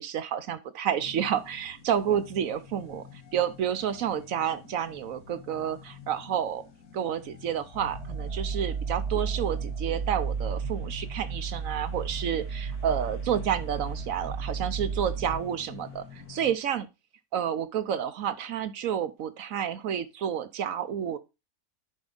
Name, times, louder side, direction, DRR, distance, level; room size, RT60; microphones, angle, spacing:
voice 1, 0.0-3.0 3.3-6.6 6.9-16.9 17.3-21.2, right 9 dB, 65° right, 1.0 m, -30 dB
sound 1, 1.0-16.6, left 7 dB, 80° left, 1.8 m, -49 dB
sound 2, 7.7-15.4, right 5 dB, 50° right, 1.3 m, -33 dB
10.5 x 4.7 x 3.8 m
omnidirectional pair, 1.6 m